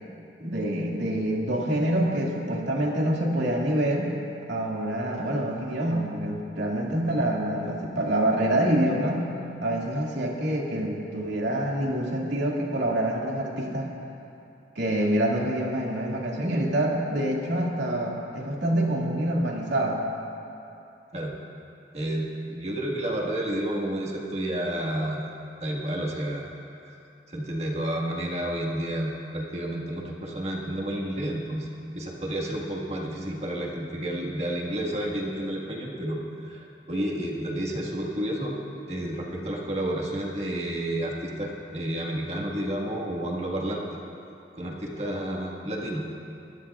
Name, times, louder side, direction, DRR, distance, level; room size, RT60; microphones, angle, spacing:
voice 1, 0.4-4.1 4.5-9.3 9.6-13.9 14.8-20.0, right 1 dB, 85° right, -2 dB, 2.3 m, -26 dB
voice 2, 21.9-25.2 25.6-26.5 26.8-26.9 27.3-31.7 31.9-38.5 38.9-44.0 44.5-46.0, right 1 dB, 35° right, -2 dB, 1.7 m, -30 dB
23.5 x 17.0 x 2.5 m, 2.7 s
head